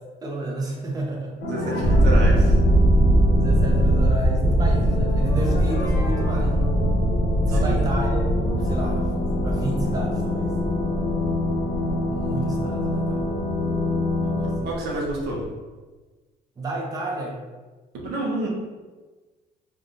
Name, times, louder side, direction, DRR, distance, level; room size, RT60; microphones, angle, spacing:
voice 1, 0.2-1.3 1.7-2.0 3.3-6.8 7.5-10.5 12.1-13.5 14.2-14.5 16.6-17.4, right 2 dB, 20° right, -2 dB, 0.7 m, -31 dB
sound 1, 1.4-14.6, left 1 dB, 75° left, 1.0 m, -27 dB
voice 2, 1.5-2.6 7.5-7.8 14.6-15.4 17.9-18.5, right 1 dB, 80° right, -2 dB, 1.0 m, -29 dB
sound 2, 1.8-15.4, right 1 dB, 35° left, 0.8 m, -22 dB
3.7 x 3.4 x 2.6 m, 1.3 s
cardioid pair, 110°, 17 cm